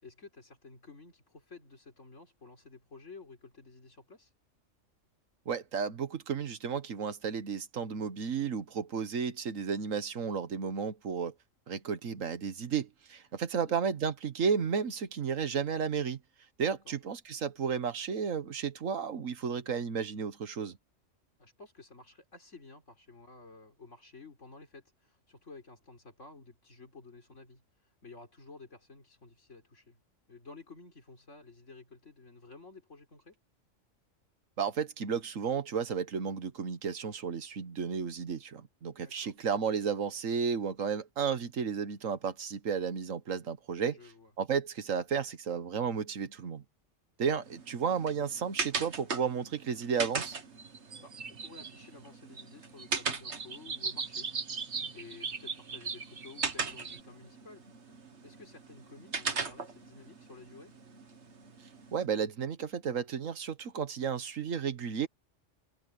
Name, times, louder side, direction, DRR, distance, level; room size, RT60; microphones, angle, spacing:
voice 1, 0.0-4.3 13.5-13.8 16.8-16.9 21.4-30.0 30.3-33.4 39.0-39.3 43.9-44.3 51.0-54.3 54.9-57.7 58.2-60.8, left 3 dB, 70° left, 4.3 m, -53 dB
voice 2, 5.4-11.3 11.7-16.2 16.6-20.8 34.6-44.0 44.4-46.6 47.2-50.4 61.9-65.1, right 6 dB, 85° right, 1.6 m, -33 dB
sound 1, 47.4-62.1, right 4 dB, 60° right, 2.0 m, -40 dB
sound 2, 49.9-50.1 50.6-52.1 52.4-52.5 52.8-57.0, right 5 dB, 40° right, 1.2 m, -39 dB
omnidirectional pair, 1.3 m